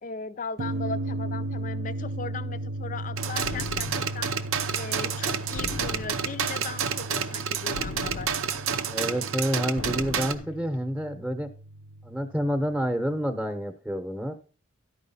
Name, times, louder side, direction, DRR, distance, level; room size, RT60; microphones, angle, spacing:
voice 1, 0.0-4.4 4.7-8.3, left 4 dB, 40° left, 0.5 m, -38 dB
sound 1, 0.6-13.5, right 1 dB, 55° right, 0.6 m, -37 dB
sound 2, 3.2-10.4, right 7 dB, 90° right, 0.7 m, -30 dB
sound 3, 3.4-4.3 5.5-6.5 7.7-8.8 9.8-10.6, left 3 dB, 85° left, 0.7 m, -38 dB
voice 2, 8.9-11.5 12.0-14.3, equal, 5° right, 0.9 m, -28 dB
11.5 x 4.9 x 5.6 m
head